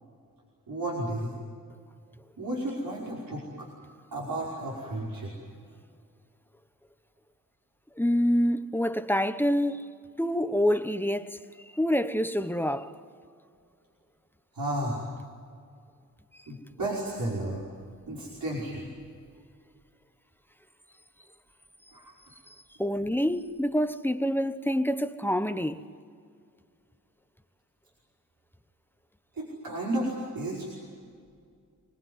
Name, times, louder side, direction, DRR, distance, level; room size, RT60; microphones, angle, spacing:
voice 1, 0.7-1.3 2.4-3.7 4.1-5.3 14.5-15.2 16.5-17.6 18.1-18.9 21.9-22.1 29.3-30.7, right 1 dB, 75° right, 5.4 m, -33 dB
voice 2, 8.0-9.9 10.2-11.4 11.7-12.9 22.8-25.8, equal, 5° left, 1.1 m, -26 dB
28.5 x 20.5 x 9.6 m
wide cardioid pair, 80°, 34 cm